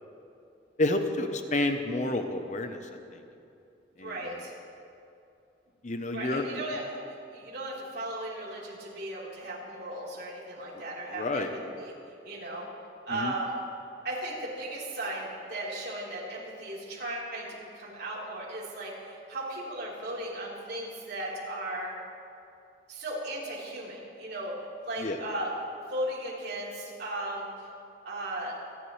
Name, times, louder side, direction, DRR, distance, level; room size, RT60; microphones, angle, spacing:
voice 1, 0.8-3.2 4.0-4.4 5.8-6.6 10.7-10.8 11.1-11.5 13.1-13.3 25.0-25.2, left 2 dB, 40° left, 6 dB, 0.8 m, -30 dB
voice 2, 4.0-4.5 6.1-6.8 7.3-11.5 11.7-11.9 12.2-12.7 13.1-13.5 14.0-17.5 17.7-21.9 22.9-24.5 24.8-25.5 25.9-27.5 28.0-28.5, right 1 dB, 60° right, -6 dB, 3.8 m, -36 dB
28.0 x 11.0 x 3.2 m, 2.6 s
head